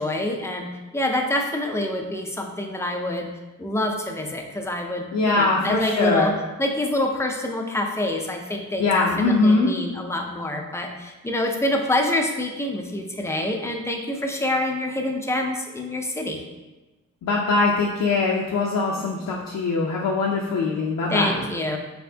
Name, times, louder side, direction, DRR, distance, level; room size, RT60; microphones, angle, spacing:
voice 1, 0.0-3.3 3.6-6.3 6.6-16.4 21.1-21.8, left 1 dB, 10° left, 2 dB, 0.5 m, -26 dB
voice 2, 5.1-6.3 8.8-9.7 17.2-21.4, left 3 dB, 75° left, -2 dB, 0.6 m, -22 dB
4.3 x 4.2 x 2.7 m, 1.1 s
wide cardioid pair, 115°, 33 cm